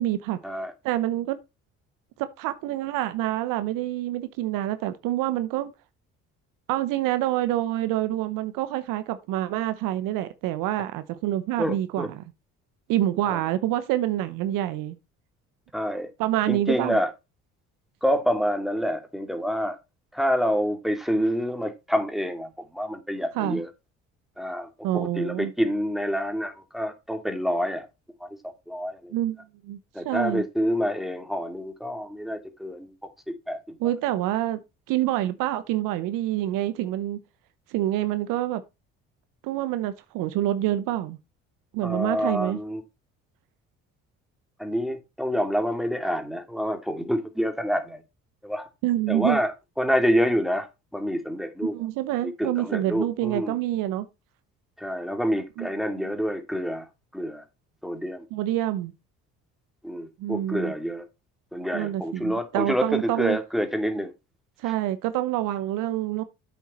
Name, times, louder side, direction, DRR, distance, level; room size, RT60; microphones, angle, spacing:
voice 1, 0.0-0.4 0.8-1.4 2.2-5.7 6.7-12.2 12.9-15.0 16.2-17.0 23.4-23.6 24.8-25.5 29.1-29.4 29.6-29.8 30.0-30.4 33.8-34.6 34.9-37.2 37.7-38.6 39.4-41.2 41.7-42.6 48.8-49.4 51.7-54.1 55.6-56.0 58.3-58.9 60.2-60.7 61.7-63.4 64.6-66.2, right 13 dB, 75° right, 0.9 m, -27 dB
voice 2, 11.6-12.1 13.2-13.4 15.7-16.1 16.5-17.1 18.0-19.8 20.1-23.7 24.4-24.7 24.9-27.9 28.2-28.3 28.7-29.1 29.9-32.9 33.3-33.6 41.8-42.8 44.6-48.0 48.4-48.7 49.1-49.5 49.8-50.7 50.9-51.7 52.2-53.5 54.8-56.8 57.1-57.4 57.8-58.3 59.8-61.0 61.5-64.1, equal, ahead, 2.5 m, -27 dB
8.3 x 7.0 x 4.3 m
supercardioid pair, 70°, 33 cm